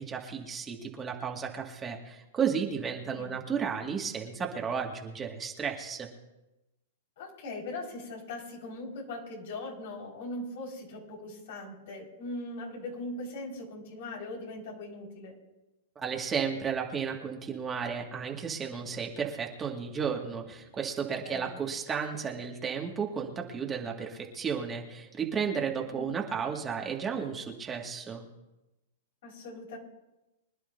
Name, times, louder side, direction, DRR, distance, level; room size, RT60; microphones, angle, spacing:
voice 1, 0.0-6.1 16.0-28.2, right 6 dB, 20° right, 0 dB, 2.0 m, -33 dB
voice 2, 7.2-15.3 21.2-21.6 25.9-26.1 29.2-29.8, left 2 dB, 65° left, -2 dB, 5.1 m, -40 dB
25.0 x 10.5 x 2.7 m, 0.98 s
hypercardioid pair, 120°, 0 cm